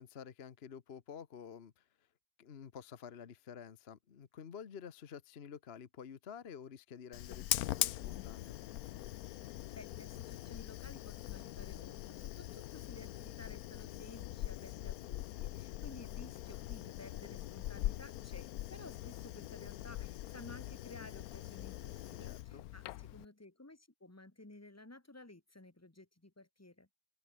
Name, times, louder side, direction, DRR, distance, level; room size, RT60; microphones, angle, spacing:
voice 1, 0.0-2.1 2.4-8.6 22.2-22.6, left 7 dB, 40° left, 1.0 m, -50 dB
Fire, 7.1-23.2, left 14 dB, 70° left, 0.9 m, -42 dB
voice 2, 9.8-26.9, left 2 dB, 10° left, 1.8 m, -54 dB
omnidirectional pair, 2.0 m